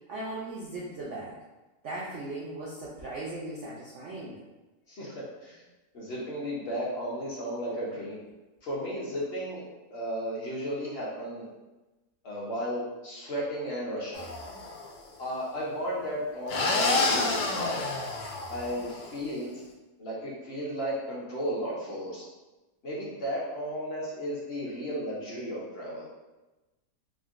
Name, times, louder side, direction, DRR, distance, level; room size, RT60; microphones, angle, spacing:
voice 1, 0.1-1.4 1.8-4.4, right 2 dB, 75° right, -6 dB, 0.6 m, -38 dB
voice 2, 4.9-5.6 5.9-8.2 8.6-11.5 12.2-14.3 15.2-17.8 18.5-19.5 20.0-22.3 22.8-26.1, equal, 50° left, -6 dB, 0.8 m, -34 dB
sound 1, 14.1-14.9 16.5-19.1, left 2 dB, 85° left, 1.2 m, -29 dB
3.7 x 2.1 x 2.4 m, 1.1 s
omnidirectional pair, 1.8 m